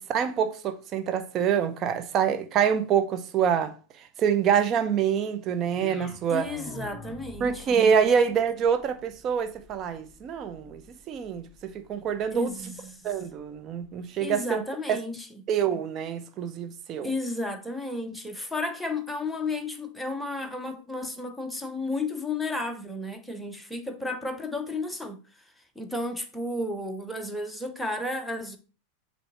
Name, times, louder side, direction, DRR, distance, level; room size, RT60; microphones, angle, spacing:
voice 1, 0.1-3.7 4.2-6.5 7.4-10.8 11.1-12.5 13.0-14.6 14.9-15.0 15.5-17.1, right 7 dB, 35° right, 0.7 m, -26 dB
sound 1, 5.7-13.9, left 2 dB, 20° left, 3.5 m, -48 dB
voice 2, 6.3-7.8 12.3-13.1 14.2-15.3 17.0-25.2 25.8-28.6, left 2 dB, 5° left, 0.8 m, -33 dB
7.7 x 2.8 x 4.5 m
figure-of-eight pair, 90°, 0 cm